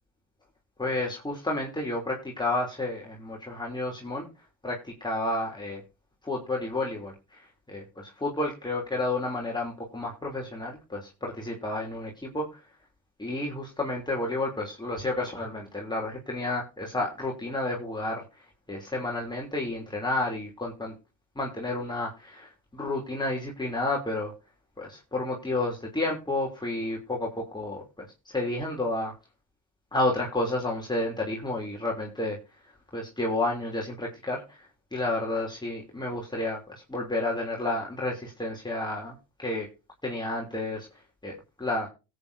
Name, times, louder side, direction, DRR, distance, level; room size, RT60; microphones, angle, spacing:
voice 1, 0.8-4.3 4.6-5.8 6.2-12.6 13.2-18.2 18.7-20.9 21.3-24.3 24.8-29.1 29.9-32.4 32.9-39.7 40.0-40.9 41.2-41.9, left 2 dB, 10° left, -2 dB, 3.2 m, -31 dB
17.0 x 8.8 x 2.7 m, 0.29 s
supercardioid pair, 80°, 35 cm